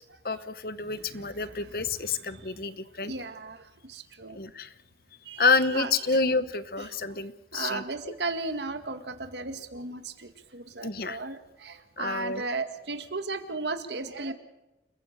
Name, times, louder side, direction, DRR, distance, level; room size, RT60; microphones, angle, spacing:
voice 1, 0.2-3.1 4.3-4.7 5.4-7.8 10.8-11.2 12.0-12.4, left 4 dB, 55° left, 14 dB, 1.0 m, -28 dB
voice 2, 0.8-1.7 2.1-2.5 3.0-4.4 5.3-5.4 5.7-5.9 6.9-7.2 7.5-14.3, right 3 dB, 85° right, 8 dB, 2.0 m, -36 dB
29.0 x 15.5 x 6.8 m, 1.0 s
head